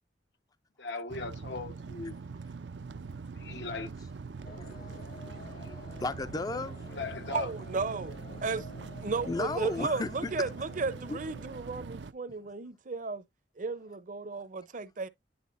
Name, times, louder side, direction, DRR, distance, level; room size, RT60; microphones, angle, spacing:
voice 1, 0.8-2.2 3.3-3.9 6.9-7.5, left 4 dB, 75° left, 1.1 m, -38 dB
sound 1, 1.1-12.1, right 4 dB, 85° right, 0.6 m, -43 dB
sound 2, 4.4-11.8, left 1 dB, 55° left, 1.2 m, -49 dB
voice 2, 5.3-7.0 9.3-10.1 10.4-10.5 11.1-11.2 14.3-14.4, left 2 dB, 20° left, 0.5 m, -35 dB
voice 3, 7.3-8.1 8.4-8.7 9.0-13.2 13.6-15.1, right 4 dB, 45° right, 0.7 m, -34 dB
10.5 x 3.7 x 2.5 m
head